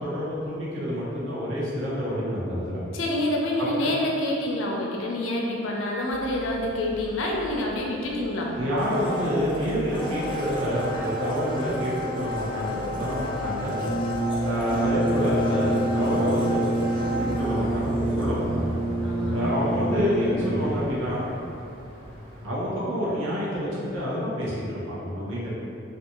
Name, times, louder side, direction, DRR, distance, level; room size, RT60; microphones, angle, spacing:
voice 1, 0.0-2.8 3.6-3.9 8.6-13.8 14.4-16.6 17.0-18.7 19.3-21.3 22.4-25.5, equal, 90° right, -9 dB, 0.9 m, -28 dB
voice 2, 2.9-8.5 19.0-19.5, left 1 dB, 85° left, -1 dB, 0.5 m, -27 dB
sound 1, 6.1-22.5, equal, 25° right, 0.5 m, -38 dB
Domestic sounds home sounds, 8.7-18.7 19.0-19.1, left 1 dB, 25° left, 0.3 m, -33 dB
Brass instrument, 13.7-20.9, right 2 dB, 5° right, 0.9 m, -27 dB
2.6 x 2.3 x 2.8 m, 2.6 s
head